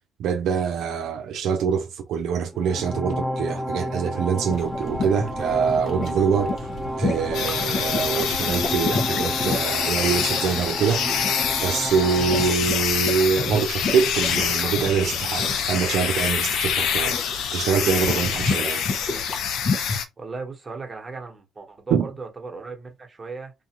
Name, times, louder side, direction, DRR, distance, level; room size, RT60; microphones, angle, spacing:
voice 1, 0.2-6.7 7.0-11.1 11.6-17.2 17.5-18.8 21.9-22.1, right 6 dB, 75° right, 0.4 m, -24 dB
sound 1, 2.5-12.5, equal, ahead, 0.6 m, -31 dB
sound 2, 4.5-20.0, left 3 dB, 55° left, 0.8 m, -32 dB
sound 3, 7.3-20.1, left 8 dB, 75° left, 0.4 m, -26 dB
voice 2, 20.2-23.5, right 3 dB, 25° right, 1.1 m, -36 dB
2.4 x 2.2 x 2.9 m
supercardioid pair, 75°, 0 cm